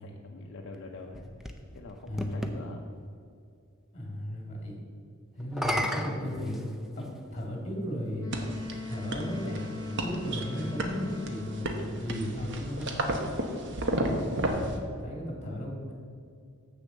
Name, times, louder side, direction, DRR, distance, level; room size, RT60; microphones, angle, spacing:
voice 1, 0.0-2.8 13.9-15.1, left 2 dB, 55° left, 1 dB, 0.6 m, -46 dB
sound 1, 0.7-2.6 5.4-7.2 8.1-8.2 11.9-13.5, equal, ahead, 0.6 m, -36 dB
voice 2, 2.1-2.6 3.9-4.7 5.4-6.6 7.0-7.1 7.3-8.3 8.9-12.9 14.9-15.9, equal, 30° left, 0 dB, 2.3 m, -35 dB
Wind instrument woodwind instrument, 8.2-12.1, left 3 dB, 15° left, 1.1 m, -41 dB
sound 2, 8.3-14.8, right 1 dB, 55° right, 1.0 m, -33 dB
7.4 x 7.0 x 6.4 m, 2.4 s
head